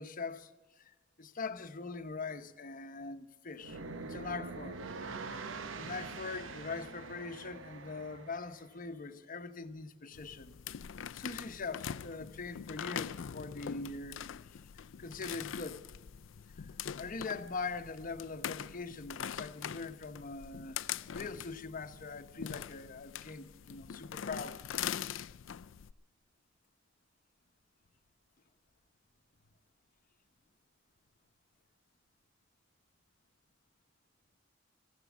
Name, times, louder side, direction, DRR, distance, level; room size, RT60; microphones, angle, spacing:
voice 1, 0.0-4.8 5.3-5.5 5.8-14.2 15.0-15.9 16.6-20.8 21.1-24.6, left 4 dB, 45° left, 0.9 m, -42 dB
sound 1, 3.5-8.7, right 3 dB, 80° right, 0.9 m, -44 dB
sound 2, 10.1-25.9, left 9 dB, 75° left, 0.4 m, -43 dB
15.0 x 14.0 x 6.1 m
head